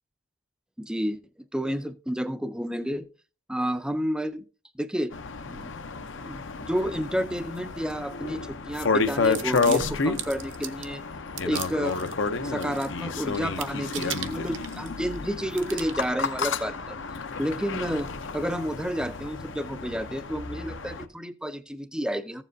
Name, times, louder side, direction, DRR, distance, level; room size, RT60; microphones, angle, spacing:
voice 1, 0.8-1.2 1.5-3.1 3.5-4.4 4.8-5.1 5.5-5.7 6.1-11.0 11.4-12.0 12.4-17.0 17.4-22.4, equal, 5° right, 0.4 m, -30 dB
sound 1, 5.1-21.0, left 4 dB, 60° left, 0.7 m, -31 dB
sound 2, 9.2-10.9 11.4-12.1 12.5-13.1 13.3-15.2 15.5-16.1, right 10 dB, 60° right, 0.8 m, -38 dB
15.0 x 7.3 x 2.7 m
head